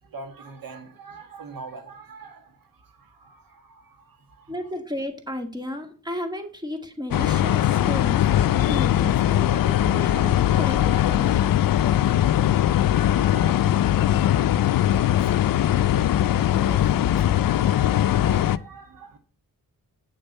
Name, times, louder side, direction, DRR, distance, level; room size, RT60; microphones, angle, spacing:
voice 1, 0.0-4.5 13.1-17.4 18.2-19.2, right 4 dB, 85° right, 1.7 m, -44 dB
voice 2, 4.5-8.3 8.7-11.6, left 1 dB, 10° right, 2.1 m, -34 dB
sound 1, 7.1-18.6, left 11 dB, 80° left, 0.5 m, -20 dB
9.2 x 6.8 x 5.4 m
wide cardioid pair, 90°, 33 cm